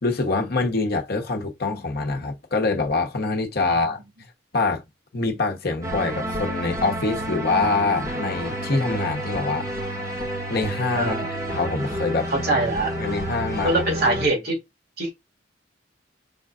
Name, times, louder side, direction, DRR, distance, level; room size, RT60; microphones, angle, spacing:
voice 1, 0.0-4.0 4.5-4.8 5.1-9.7 10.5-11.3 11.6-12.3 13.0-13.8, left 3 dB, 50° left, 1.0 m, -25 dB
sound 1, 5.8-14.3, right 1 dB, 15° right, 1.9 m, -30 dB
voice 2, 11.0-11.3 12.3-12.9 13.6-14.6 15.0-15.1, right 2 dB, 55° right, 1.9 m, -23 dB
5.1 x 3.9 x 2.4 m
head